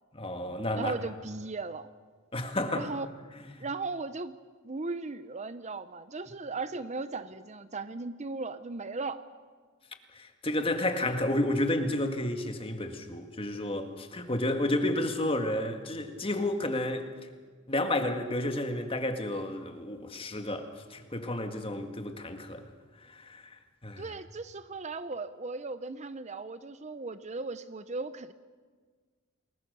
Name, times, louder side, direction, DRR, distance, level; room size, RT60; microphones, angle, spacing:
voice 1, 0.1-0.9 2.3-2.9 3.6-3.7 10.1-17.1 17.7-22.6 23.1-23.6 23.8-24.0, left 1 dB, 25° left, 6 dB, 1.9 m, -31 dB
voice 2, 0.8-1.9 2.7-3.1 3.6-4.3 4.6-9.2 24.0-28.3, right 3 dB, 35° right, 13 dB, 0.6 m, -37 dB
29.0 x 20.5 x 6.7 m, 1.5 s
head